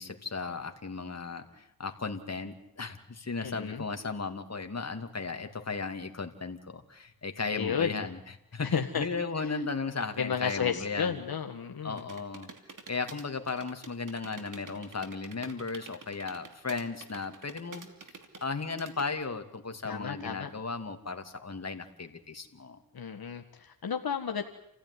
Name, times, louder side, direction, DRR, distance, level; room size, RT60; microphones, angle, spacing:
voice 1, 0.0-8.2 8.5-11.2 11.8-12.5 12.9-17.9 18.4-22.8, left 4 dB, 45° left, 5 dB, 2.7 m, -36 dB
voice 2, 3.4-3.8 7.5-8.1 8.6-9.0 10.2-12.1 19.8-20.5 22.9-24.4, left 7 dB, 75° left, 5 dB, 1.7 m, -32 dB
sound 1, 11.9-19.1, right 4 dB, 60° right, 2.9 m, -48 dB
28.5 x 15.5 x 9.8 m, 0.77 s
cardioid pair, 65°, 36 cm